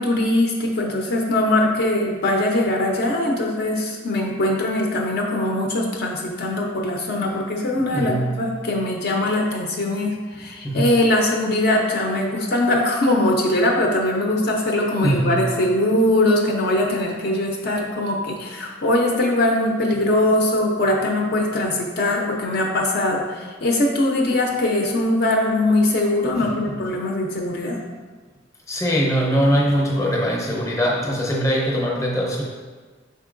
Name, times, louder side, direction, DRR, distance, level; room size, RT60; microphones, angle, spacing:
voice 1, 0.0-27.8, left 1 dB, 55° left, 0 dB, 0.5 m, -21 dB
voice 2, 7.9-8.4 10.6-11.0 15.0-15.4 26.3-26.8 28.7-32.4, equal, 15° left, -3 dB, 0.7 m, -22 dB
5.3 x 3.6 x 2.5 m, 1.4 s
head